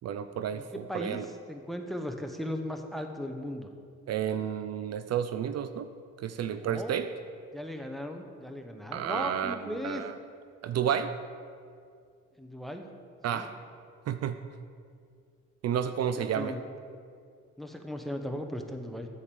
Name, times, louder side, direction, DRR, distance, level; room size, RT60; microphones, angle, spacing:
voice 1, 0.0-1.3 4.1-5.9 6.2-7.1 8.9-10.2 10.6-11.1 13.2-13.5 14.1-14.4 15.6-16.6, right 9 dB, 60° right, 10 dB, 0.4 m, -31 dB
voice 2, 0.5-3.7 6.6-7.0 7.5-10.0 12.4-12.8 13.3-13.5 16.2-16.6 17.6-19.1, equal, ahead, 5 dB, 0.8 m, -37 dB
8.5 x 4.9 x 6.9 m, 2.2 s
cardioid pair, 90°, 30 cm